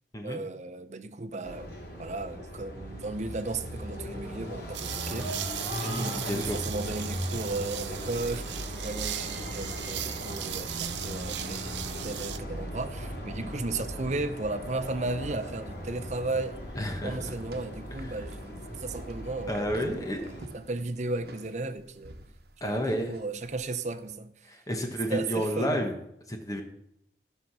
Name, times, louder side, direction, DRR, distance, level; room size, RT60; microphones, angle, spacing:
voice 1, 0.2-5.4 5.8-11.7 12.0-16.6 17.0-22.1 22.6-24.5 25.1-25.8, right 2 dB, 40° right, 0.7 m, -35 dB
sound 1, 1.4-20.5, equal, 65° left, 4.0 m, -38 dB
sound 2, 4.7-12.4, right 11 dB, 85° right, 0.7 m, -37 dB
voice 2, 5.8-6.6 13.3-13.5 16.8-17.2 18.0-18.2 19.5-20.2 22.6-23.2 24.4-26.0 26.3-26.6, equal, 20° left, 1.1 m, -31 dB
sound 3, 15.3-24.2, right 1 dB, 60° right, 1.2 m, -50 dB
14.0 x 5.7 x 6.0 m
head